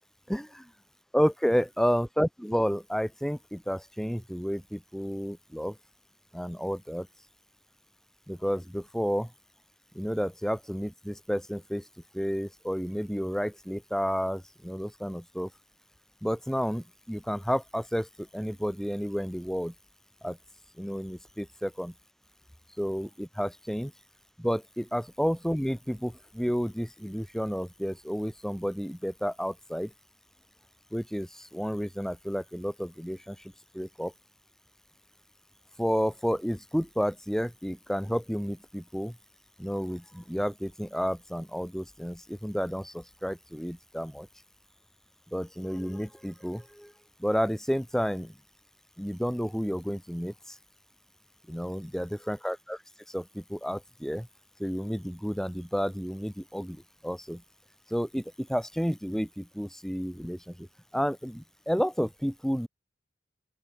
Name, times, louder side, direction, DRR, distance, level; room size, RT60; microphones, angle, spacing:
voice 1, 0.3-0.6 1.1-5.7 6.3-7.1 8.3-9.3 10.0-11.8 12.1-15.5 16.2-19.7 20.2-20.4 20.8-21.9 22.8-23.9 24.4-29.9 30.9-33.4 33.7-34.1 35.8-39.1 39.6-44.3 45.3-46.9 47.2-48.3 49.0-50.6 51.5-52.8 53.1-54.3 54.6-57.4 57.9-60.7 60.9-62.7, equal, ahead, 5.7 m, -31 dB
open air
head